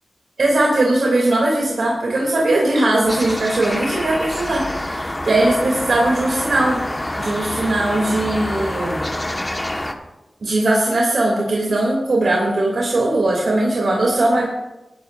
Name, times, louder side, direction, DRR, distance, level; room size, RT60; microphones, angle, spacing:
voice 1, 0.4-6.8 7.2-9.0 10.4-14.5, right 2 dB, 75° right, -3 dB, 2.9 m, -19 dB
sound 1, 3.1-9.9, left 1 dB, 20° left, 1.4 m, -27 dB
19.5 x 11.0 x 2.6 m, 0.97 s
cardioid pair, 50°, 0 cm